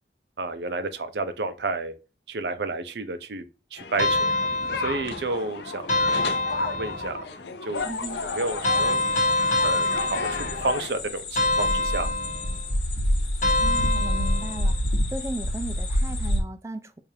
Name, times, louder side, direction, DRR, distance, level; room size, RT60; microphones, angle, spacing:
voice 1, 0.4-1.9 2.3-3.4 3.7-4.2 4.8-5.8 6.6-7.9 8.2-9.0 9.6-12.1, right 3 dB, 75° right, 0.6 m, -30 dB
sound 1, 3.8-11.0, left 4 dB, 75° left, 0.5 m, -34 dB
sound 2, 4.0-5.3 5.9-7.2 8.6-10.8 11.4-12.7 13.4-14.7, left 2 dB, 45° left, 1.0 m, -25 dB
sound 3, 7.8-16.4, left 1 dB, 90° left, 1.1 m, -28 dB
voice 2, 7.8-8.2 13.6-14.7 15.1-17.0, right 2 dB, 15° right, 0.4 m, -36 dB
4.8 x 2.5 x 2.7 m
head